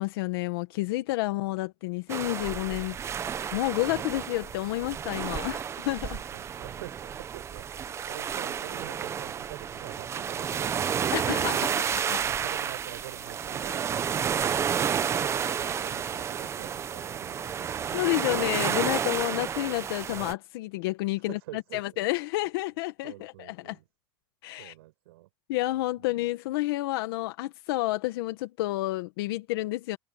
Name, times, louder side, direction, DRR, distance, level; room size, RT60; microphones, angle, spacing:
voice 1, 0.0-3.0 3.5-6.2 11.1-12.2 15.5-15.7 17.9-23.8 24.4-24.7 25.5-30.0, left 18 dB, 75° left, 1.3 m, -30 dB
sound 1, 2.1-20.3, right 8 dB, 20° right, 0.8 m, -31 dB
voice 2, 6.3-19.2 21.3-21.8 23.0-23.8 24.6-25.3 26.0-26.2, right 18 dB, 85° right, 7.2 m, -46 dB
supercardioid pair, 145°, 12 cm